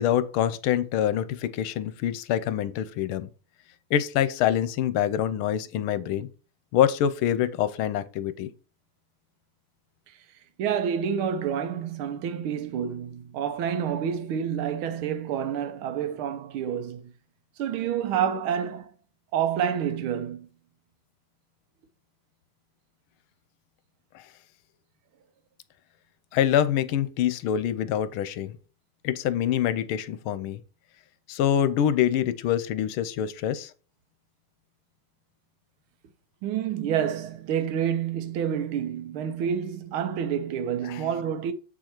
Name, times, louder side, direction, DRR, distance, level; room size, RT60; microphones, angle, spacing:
voice 1, 0.0-3.3 3.9-6.3 6.7-8.5 24.1-24.2 26.3-28.6 29.0-30.6 31.3-33.7 40.8-41.0, left 10 dB, 90° left, 1.5 m, -25 dB
voice 2, 10.6-17.1 17.6-18.9 19.3-20.5 36.4-41.5, right 8 dB, 80° right, 1.6 m, -28 dB
7.8 x 4.8 x 4.5 m
omnidirectional pair, 2.3 m